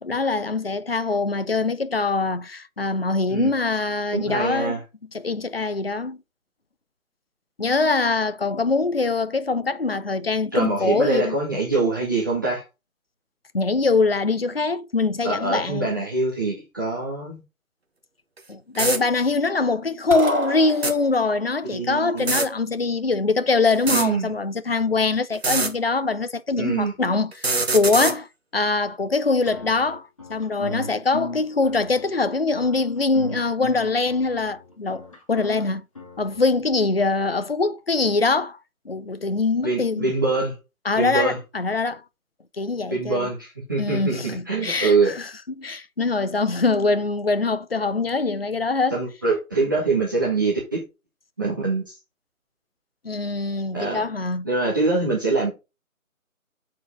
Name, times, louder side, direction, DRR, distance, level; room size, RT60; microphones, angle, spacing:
voice 1, 0.0-4.7 5.1-6.2 7.6-11.3 13.5-15.9 18.5-27.5 27.7-28.3 28.5-35.8 36.2-38.6 38.9-40.0 40.9-42.0 42.6-43.3 43.8-45.3 45.6-49.0 53.0-54.5, left 3 dB, 45° left, 0.6 m, -23 dB
voice 2, 4.1-4.8 10.5-12.6 15.2-17.4 21.7-22.3 23.9-24.3 26.6-26.9 39.6-40.5 40.9-41.4 42.9-45.1 48.9-50.8 51.4-52.0 53.7-54.0 54.4-55.5, right 3 dB, 15° right, 1.3 m, -24 dB
sound 1, 18.4-18.5 18.7-19.0 20.7-20.9 22.2-22.5 23.7-24.1 25.3-25.7 27.3-28.2, right 3 dB, 45° right, 1.3 m, -23 dB
sound 2, 20.1-21.4, right 1 dB, 70° right, 2.1 m, -28 dB
sound 3, 29.5-36.9, left 1 dB, 25° left, 1.3 m, -37 dB
6.9 x 4.7 x 5.1 m
figure-of-eight pair, 160°, 43 cm